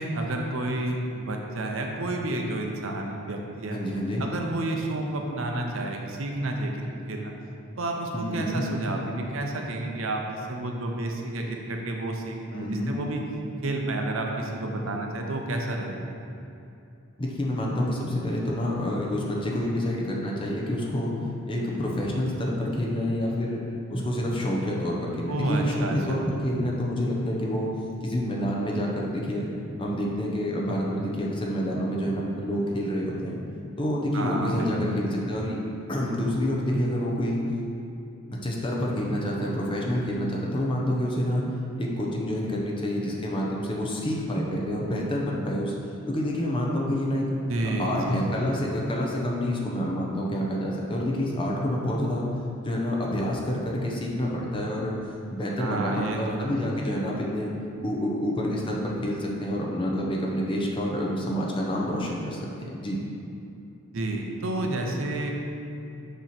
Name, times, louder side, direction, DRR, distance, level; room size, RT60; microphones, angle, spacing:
voice 1, 0.0-3.8 4.2-7.3 7.7-13.2 13.6-16.1 25.3-26.2 34.1-35.0 47.5-48.2 55.6-56.5 63.9-65.3, right 2 dB, 70° right, 1 dB, 0.7 m, -30 dB
voice 2, 3.7-4.2 8.1-8.6 12.5-13.0 17.2-21.1 21.5-23.6 23.9-27.7 28.0-29.5 29.8-33.4 33.8-35.6 35.9-37.4 38.3-41.4 41.8-45.7 46.1-47.3 47.8-52.3 52.6-55.0 55.3-57.5 57.8-63.0, equal, 25° left, -3 dB, 0.8 m, -28 dB
6.6 x 3.1 x 5.8 m, 2.7 s
head